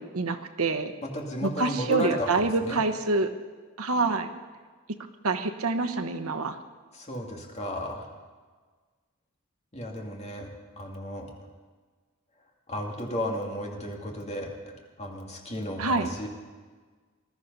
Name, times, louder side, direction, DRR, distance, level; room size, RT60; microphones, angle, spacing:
voice 1, 0.0-0.9 1.4-3.3 3.8-4.3 5.2-6.6 15.8-16.1, right 3 dB, 80° right, 8 dB, 1.1 m, -26 dB
voice 2, 1.0-2.3 2.6-2.8 6.9-8.1 9.7-10.5 10.8-11.3 12.7-16.3, equal, 30° left, 0 dB, 2.4 m, -34 dB
20.5 x 13.0 x 5.5 m, 1.4 s
head